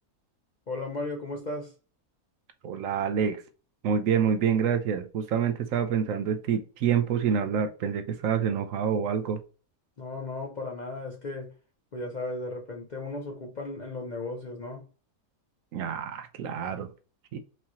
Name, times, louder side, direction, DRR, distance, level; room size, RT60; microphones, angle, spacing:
voice 1, 0.7-1.7 10.0-11.5 11.9-14.8, left 2 dB, 45° left, 1 dB, 0.6 m, -35 dB
voice 2, 2.6-3.4 3.8-9.4 15.7-16.9 17.3-17.4, right 7 dB, 70° right, 9 dB, 0.9 m, -27 dB
4.6 x 2.8 x 2.9 m, 0.35 s
omnidirectional pair, 1.5 m